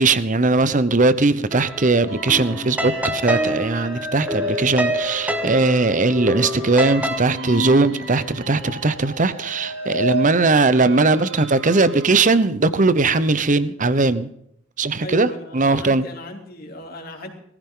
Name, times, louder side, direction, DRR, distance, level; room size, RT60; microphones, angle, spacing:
voice 1, 0.0-14.3 14.8-15.3 15.5-16.0, right 3 dB, 40° right, 14 dB, 0.9 m, -19 dB
sound 1, 1.5-7.2, right 1 dB, 5° right, 1.3 m, -28 dB
sound 2, 2.1-12.3, equal, 70° right, 2.6 m, -31 dB
voice 2, 15.0-17.3, left 1 dB, 50° left, 2 dB, 3.3 m, -37 dB
19.5 x 14.5 x 3.9 m, 0.72 s
head